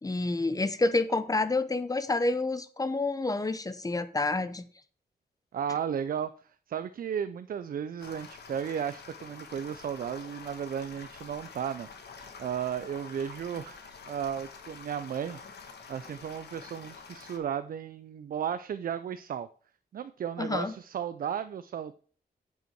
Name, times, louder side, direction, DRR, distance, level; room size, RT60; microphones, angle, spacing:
voice 1, 0.0-4.6 20.4-20.7, left 2 dB, 20° left, 13 dB, 0.7 m, -28 dB
voice 2, 5.5-6.3 6.7-13.8 14.1-15.4 15.9-19.5 19.9-21.9, right 8 dB, 60° right, 12 dB, 0.4 m, -34 dB
sound 1, 8.0-17.4, left 5 dB, 90° left, 1.3 m, -47 dB
8.9 x 5.6 x 4.5 m, 0.43 s
wide cardioid pair, 110°, 17 cm